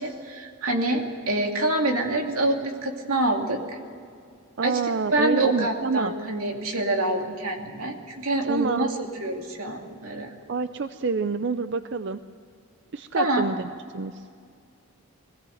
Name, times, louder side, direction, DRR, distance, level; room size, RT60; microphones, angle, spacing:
voice 1, 0.0-3.6 4.6-4.8 5.1-8.9 9.2-10.3 13.1-13.4, right 1 dB, 85° right, 2 dB, 2.6 m, -26 dB
voice 2, 4.6-6.1 8.4-8.9 10.5-12.2 12.9-13.7 13.9-14.3, right 5 dB, 55° right, 11 dB, 0.5 m, -27 dB
22.5 x 17.0 x 7.9 m, 2.3 s
head